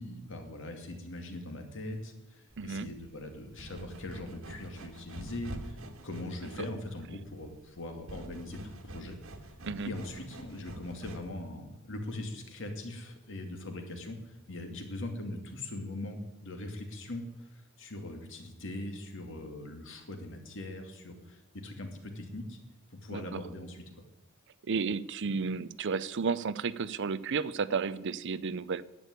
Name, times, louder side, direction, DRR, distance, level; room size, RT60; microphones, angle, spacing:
voice 1, 0.0-5.8 6.0-9.2 9.9-22.6 22.9-23.8, left 1 dB, 60° left, 4 dB, 2.4 m, -41 dB
sound 1, 2.5-11.5, right 1 dB, 75° right, 1.8 m, -47 dB
voice 2, 2.6-2.9 9.6-9.9 23.1-23.4 24.7-28.8, right 5 dB, 60° right, 17 dB, 0.5 m, -32 dB
11.0 x 8.5 x 9.6 m, 0.95 s
head